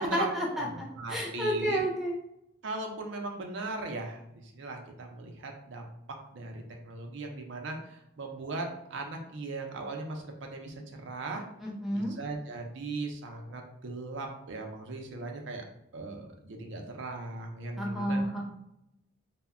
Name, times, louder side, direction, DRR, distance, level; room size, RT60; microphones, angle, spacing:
voice 1, 0.0-2.1 11.6-12.1 17.8-18.5, equal, ahead, -3 dB, 0.5 m, -31 dB
voice 2, 0.6-1.8 2.6-11.4 11.9-15.6 15.9-18.2, right 3 dB, 65° right, 2 dB, 0.4 m, -38 dB
2.1 x 2.1 x 3.5 m, 0.81 s
head